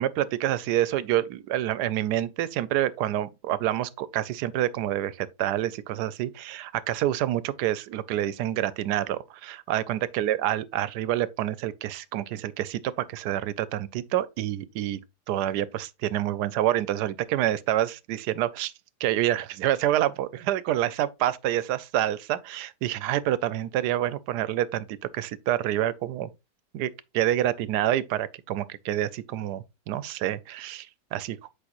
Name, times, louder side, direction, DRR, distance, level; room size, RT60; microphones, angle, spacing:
voice 1, 0.0-15.0 15.3-18.7 19.0-26.3 26.7-31.4, right 12 dB, 80° right, 1.1 m, -27 dB
8.3 x 5.2 x 2.9 m
omnidirectional pair, 1.8 m